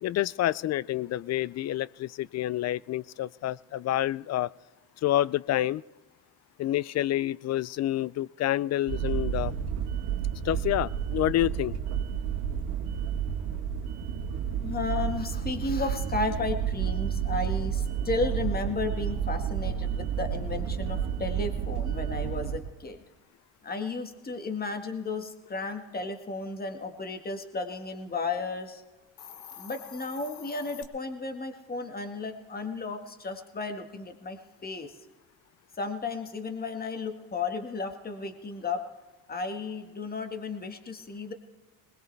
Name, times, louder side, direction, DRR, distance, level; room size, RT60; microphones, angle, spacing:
voice 1, 0.0-4.5 5.0-5.8 6.6-9.5 10.4-11.7, left 13 dB, 45° left, 22 dB, 0.4 m, -28 dB
sound 1, 8.9-22.6, right 8 dB, 85° right, 1.6 m, -31 dB
voice 2, 14.6-23.0 23.6-28.8 29.6-34.9 35.8-38.8 39.3-41.3, left 3 dB, 25° left, 6 dB, 1.7 m, -34 dB
Hiss, 29.0-30.8, left 8 dB, 80° left, 1.5 m, -46 dB
20.5 x 20.0 x 3.4 m, 1.1 s
supercardioid pair, 90°, 39 cm